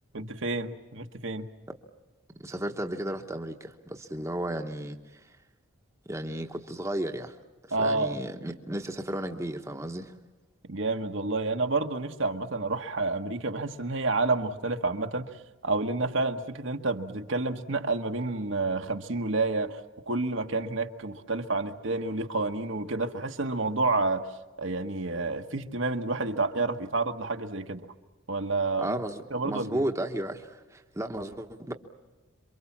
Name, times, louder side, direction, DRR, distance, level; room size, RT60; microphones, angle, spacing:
voice 1, 0.1-1.5 7.7-8.2 10.7-15.3 15.6-19.8 20.1-24.3 24.6-27.9 28.3-29.0 29.3-29.8, right 3 dB, 60° right, 6 dB, 1.2 m, -29 dB
voice 2, 2.4-5.4 6.1-7.4 7.8-10.1 28.8-31.7, right 1 dB, 15° right, 4 dB, 1.0 m, -34 dB
27.5 x 24.0 x 7.3 m, 1.2 s
head